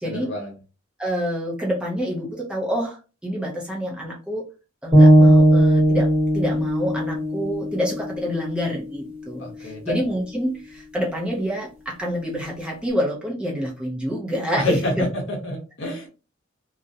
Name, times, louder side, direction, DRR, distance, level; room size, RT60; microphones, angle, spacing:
voice 1, 0.0-0.5 9.4-10.0 14.5-16.1, equal, 60° left, 0 dB, 0.9 m, -27 dB
voice 2, 1.0-4.4 4.8-15.1, equal, 5° right, -3 dB, 0.5 m, -27 dB
sound 1, 4.9-9.0, right 1 dB, 25° right, 1.3 m, -17 dB
2.4 x 2.1 x 2.6 m, 0.32 s
head